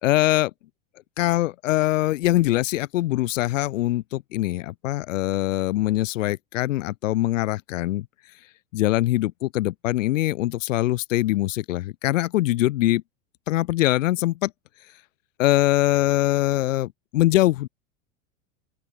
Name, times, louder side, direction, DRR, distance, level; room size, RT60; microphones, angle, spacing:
voice 1, 0.0-0.5 1.2-8.1 8.7-13.0 13.5-14.5 15.4-17.7, left 16 dB, 80° left, 1.3 m, -23 dB
open air
supercardioid pair, 115°, 37 cm